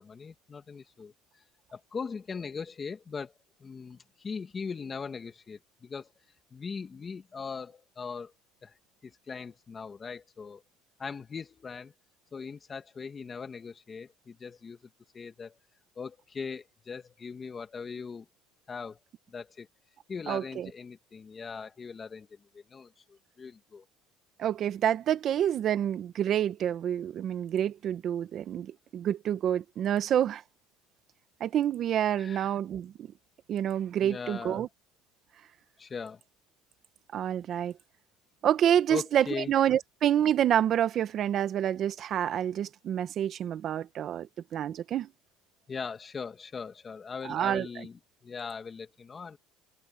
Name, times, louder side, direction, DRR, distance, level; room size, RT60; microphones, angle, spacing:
voice 1, 0.0-1.4 1.7-3.3 3.6-6.1 6.5-8.3 8.6-8.8 9.0-10.6 11.0-11.9 12.3-14.8 15.1-15.6 16.0-18.3 18.7-19.0 19.3-19.7 20.1-23.8 32.1-32.5 34.0-34.6 35.8-36.2 38.9-39.5 45.7-49.4, left 5 dB, 25° left, 2.1 m, -40 dB
voice 2, 20.3-20.7 24.4-30.4 31.4-33.1 33.5-34.7 37.1-37.7 38.4-45.1 47.2-47.7, right 10 dB, 45° right, 1.5 m, -28 dB
cardioid pair, 125°, 0 cm